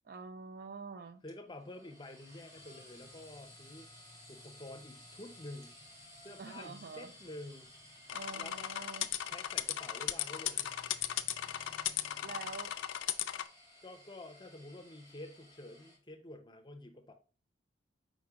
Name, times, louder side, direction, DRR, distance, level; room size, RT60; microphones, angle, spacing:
voice 1, 0.0-1.2 6.4-7.1 8.1-9.1 12.2-12.7, right 4 dB, 50° right, 0.4 m, -46 dB
voice 2, 1.2-3.9 4.3-5.8 6.2-7.7 8.3-8.7 9.3-10.8 13.8-17.1, left 1 dB, 25° left, 0.6 m, -49 dB
sound 1, 1.3-16.0, left 1 dB, 15° right, 1.4 m, -56 dB
sound 2, 8.1-13.5, left 12 dB, 85° left, 0.4 m, -36 dB
5.1 x 3.7 x 2.8 m
head